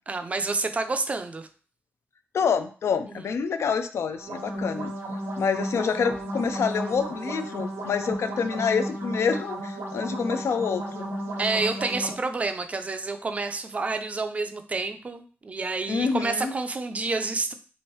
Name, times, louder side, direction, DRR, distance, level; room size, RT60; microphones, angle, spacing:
voice 1, 0.1-1.5 3.1-3.3 11.4-17.5, right 3 dB, 30° right, 7 dB, 0.3 m, -29 dB
voice 2, 2.3-4.9 5.4-11.1 15.9-16.5, left 6 dB, 85° left, 9 dB, 0.3 m, -27 dB
sound 1, 4.2-12.1, right 1 dB, 80° right, 0.9 m, -33 dB
3.5 x 3.0 x 3.1 m, 0.40 s
wide cardioid pair, 165°, 5 cm